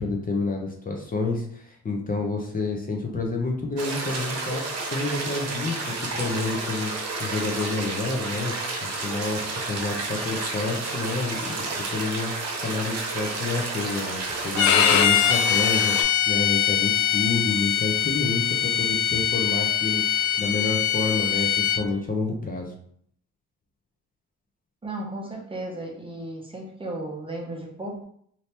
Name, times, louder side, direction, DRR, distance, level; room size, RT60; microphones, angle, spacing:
voice 1, 0.0-4.6 4.9-6.9 7.2-8.5 8.8-22.7, left 3 dB, 30° left, 1 dB, 0.7 m, -29 dB
sound 1, 3.8-16.0, right 3 dB, 55° right, 0.9 m, -31 dB
Bowed string instrument, 14.6-21.8, left 9 dB, 70° left, 0.5 m, -22 dB
voice 2, 24.8-28.0, right 1 dB, 20° right, 0 dB, 0.8 m, -35 dB
2.8 x 2.7 x 3.3 m, 0.64 s
cardioid pair, 90°, 30 cm